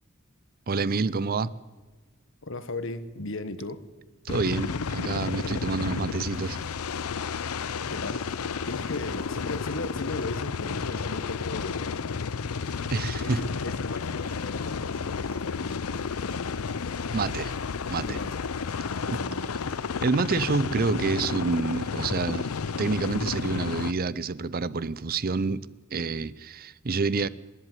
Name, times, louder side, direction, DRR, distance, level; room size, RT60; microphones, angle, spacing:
voice 1, 0.7-1.5 4.2-6.6 12.9-13.4 17.1-17.6 17.9-18.2 19.1-19.2 20.0-22.5 22.8-25.7 25.9-27.3, right 4 dB, 45° right, 0.6 m, -28 dB
voice 2, 2.4-3.9 7.9-8.3 8.6-11.8 12.9-17.1 18.0-18.5 18.8-19.5, left 2 dB, 60° left, 1.4 m, -37 dB
sound 1, 4.3-23.9, left 5 dB, 85° left, 0.6 m, -32 dB
sound 2, 5.0-21.0, equal, 70° right, 4.7 m, -50 dB
27.0 x 11.0 x 9.2 m
head